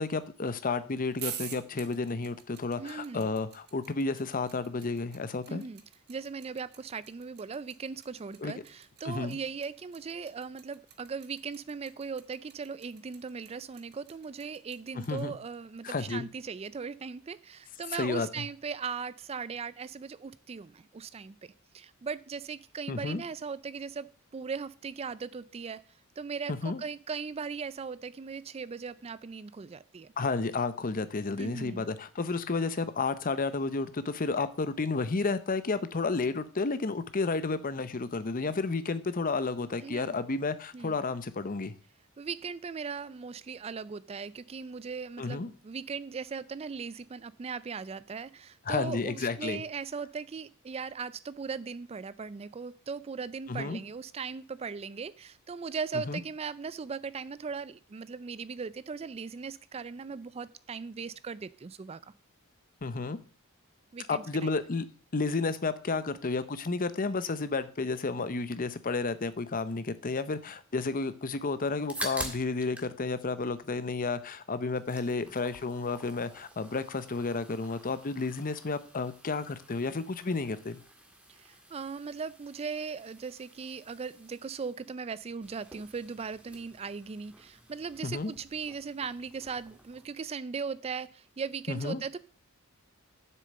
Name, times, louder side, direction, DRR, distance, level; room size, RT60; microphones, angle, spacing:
voice 1, 0.0-5.6 8.4-8.5 9.0-9.4 15.1-15.3 15.8-16.3 17.9-18.3 22.9-23.2 26.5-26.8 30.2-41.7 45.2-45.5 48.7-49.6 53.5-53.8 56.1-56.2 62.8-63.2 64.1-64.8 65.1-80.8 88.0-88.3 91.7-92.0, left 3 dB, 40° left, 14 dB, 0.7 m, -31 dB
sound 1, 1.1-15.2, right 9 dB, 50° right, 1.4 m, -46 dB
voice 2, 2.8-3.3 5.5-5.8 6.1-21.4 21.7-25.8 26.2-30.1 31.4-31.8 39.8-40.2 40.7-41.0 42.2-62.0 63.9-64.5 81.4-92.2, right 5 dB, 30° right, 17 dB, 0.3 m, -38 dB
sound 2, 71.9-72.9 73.2-74.2 74.6-90.1, right 1 dB, 5° right, 1.7 m, -48 dB
7.6 x 6.5 x 7.7 m, 0.41 s
head